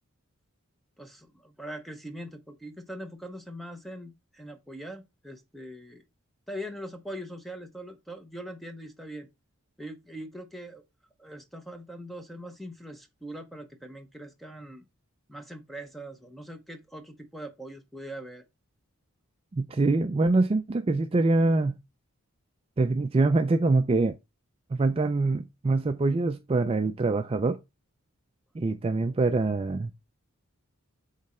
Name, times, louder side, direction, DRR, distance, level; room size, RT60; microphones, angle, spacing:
voice 1, 1.0-6.0 6.5-9.3 9.8-10.8 11.2-14.8 15.3-18.4, equal, ahead, 0.7 m, -42 dB
voice 2, 19.5-21.8 22.8-24.1 24.7-27.6 28.5-29.9, right 3 dB, 25° right, 0.3 m, -24 dB
7.6 x 3.2 x 4.2 m
head